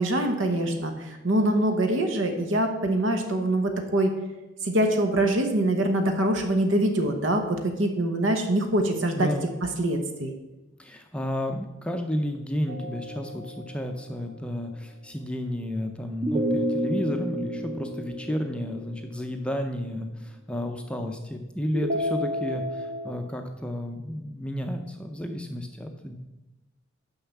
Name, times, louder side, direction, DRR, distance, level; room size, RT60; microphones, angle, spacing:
voice 1, 0.0-4.1 4.6-9.3 9.8-10.3, right 1 dB, 70° right, 5 dB, 1.0 m, -24 dB
voice 2, 9.2-9.5 10.8-26.2, equal, 5° left, 4 dB, 0.5 m, -32 dB
sound 1, 12.7-14.2 16.2-19.4 21.7-23.1, equal, 35° right, 1.0 m, -31 dB
6.8 x 5.6 x 7.1 m, 1.0 s
head